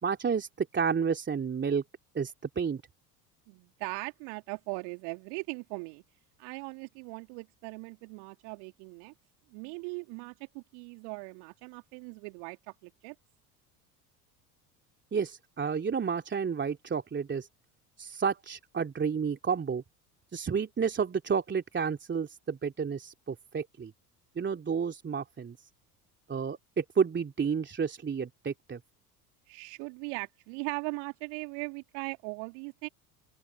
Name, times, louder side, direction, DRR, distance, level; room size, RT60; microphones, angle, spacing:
voice 1, 0.0-1.8 2.1-2.8 15.1-17.5 18.0-19.8 20.3-23.9 24.3-25.7 26.3-28.8, right 6 dB, 25° right, 3.1 m, -31 dB
voice 2, 3.5-6.0 6.4-9.1 9.5-12.6 12.8-13.1 29.5-32.9, right 39 dB, 55° right, 2.6 m, -39 dB
figure-of-eight pair, 65°, 47 cm